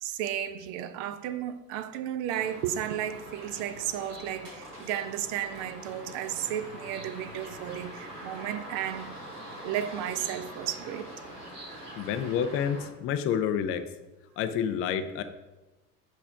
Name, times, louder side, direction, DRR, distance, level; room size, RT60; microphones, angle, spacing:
voice 1, 0.0-9.1 9.6-11.1, right 10 dB, 45° right, 0.6 m, -33 dB
sound 1, 2.3-12.9, right 1 dB, 80° right, 1.5 m, -44 dB
voice 2, 12.0-13.8 14.4-15.2, left 8 dB, 30° left, 0.5 m, -29 dB
7.6 x 3.2 x 5.7 m
figure-of-eight pair, 70°, 47 cm